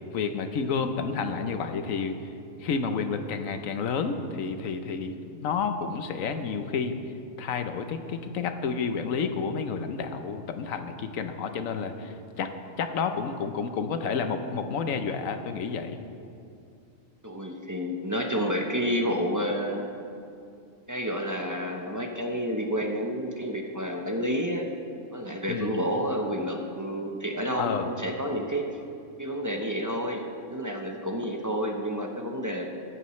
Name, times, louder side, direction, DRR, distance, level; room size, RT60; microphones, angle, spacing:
voice 1, 0.1-2.2 2.6-5.1 5.4-7.0 7.4-12.5 12.8-16.0 25.5-25.7 27.6-27.9, left 5 dB, 75° left, 8 dB, 1.2 m, -30 dB
voice 2, 17.2-19.9 20.9-24.6 25.1-28.7 29.2-32.7, equal, 20° right, 2 dB, 0.6 m, -30 dB
14.0 x 12.5 x 3.2 m, 2.5 s
omnidirectional pair, 1.4 m